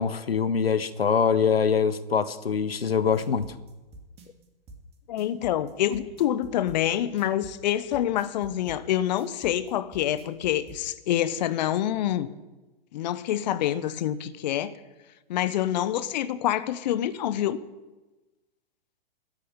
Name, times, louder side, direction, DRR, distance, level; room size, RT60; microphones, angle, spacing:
voice 1, 0.0-3.5, left 6 dB, 85° left, 14 dB, 1.0 m, -24 dB
sound 1, 2.9-10.8, right 2 dB, 20° right, 2.5 m, -47 dB
voice 2, 5.1-12.3 12.9-14.7 15.3-17.6, left 12 dB, 45° left, 14 dB, 0.9 m, -26 dB
13.5 x 8.6 x 9.9 m, 1.1 s
figure-of-eight pair, 120°, 29 cm